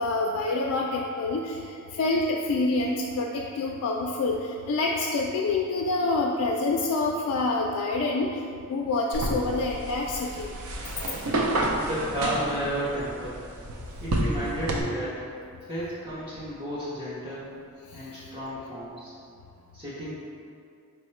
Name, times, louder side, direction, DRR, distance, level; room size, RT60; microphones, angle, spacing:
voice 1, 0.0-1.6 1.9-4.4 4.7-8.3 8.7-10.5, left 3 dB, 85° left, -1 dB, 0.3 m, -26 dB
sound 1, 9.1-14.8, right 1 dB, 75° right, 0.5 m, -30 dB
voice 2, 11.7-13.4 14.0-15.3 15.6-17.5 17.9-19.1 19.7-20.1, equal, 25° right, -10 dB, 0.6 m, -32 dB
4.6 x 2.1 x 4.2 m, 2.4 s
head